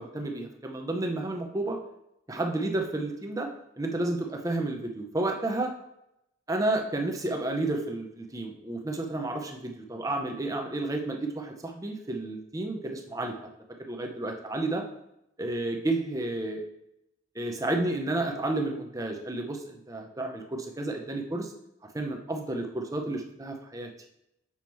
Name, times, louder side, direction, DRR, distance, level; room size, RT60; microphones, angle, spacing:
voice 1, 0.0-1.8 2.3-3.5 3.8-5.7 6.5-13.4 13.9-14.8 15.4-16.6 17.3-21.5 21.9-23.9, right 2 dB, 20° right, 3 dB, 0.7 m, -31 dB
7.0 x 5.8 x 3.1 m, 0.82 s
head